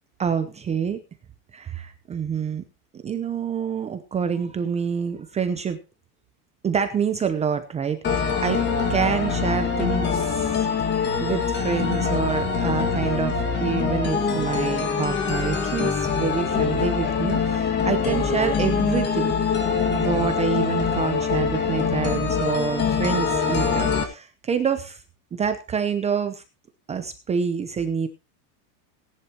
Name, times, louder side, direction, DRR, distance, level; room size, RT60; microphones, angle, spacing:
voice 1, 0.2-1.0 1.5-2.6 2.9-5.8 6.6-10.7 11.2-19.3 19.8-25.0 25.3-26.4 26.9-28.1, right 7 dB, 15° right, 8 dB, 0.7 m, -27 dB
sound 1, 8.0-24.0, left 6 dB, 20° left, 1.9 m, -24 dB
17.5 x 11.0 x 2.9 m, 0.29 s
supercardioid pair, 155°, 47 cm